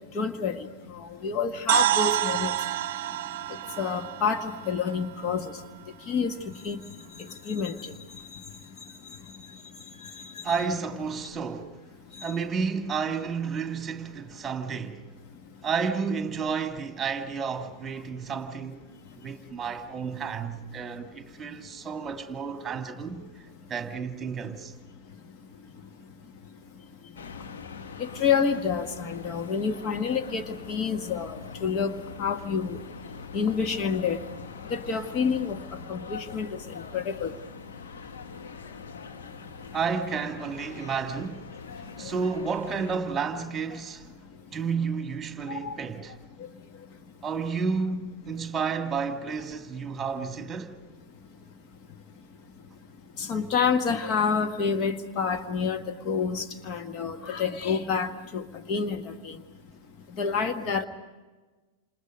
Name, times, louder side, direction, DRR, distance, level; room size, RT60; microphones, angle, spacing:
voice 1, 0.1-0.6 1.2-2.5 3.8-5.5 6.1-6.3 6.6-6.8 7.5-7.9 10.5-10.6 28.0-31.9 32.2-32.8 33.3-34.2 34.7-35.6 35.9-36.6 36.9-37.3 45.5-45.8 53.2-58.4 58.7-59.3 60.2-60.8, left 6 dB, 35° left, 1.4 m, -28 dB
sound 1, 1.7-5.6, right 11 dB, 50° right, 0.7 m, -28 dB
voice 2, 10.4-11.8 12.2-15.1 15.6-18.8 19.2-23.3 23.7-24.7 39.7-41.6 42.0-44.1 44.5-46.1 47.2-50.8, right 5 dB, 20° right, 2.1 m, -31 dB
sound 2, 27.1-43.0, left 5 dB, 65° left, 1.7 m, -43 dB
29.0 x 27.5 x 5.3 m
figure-of-eight pair, 90°, 0 cm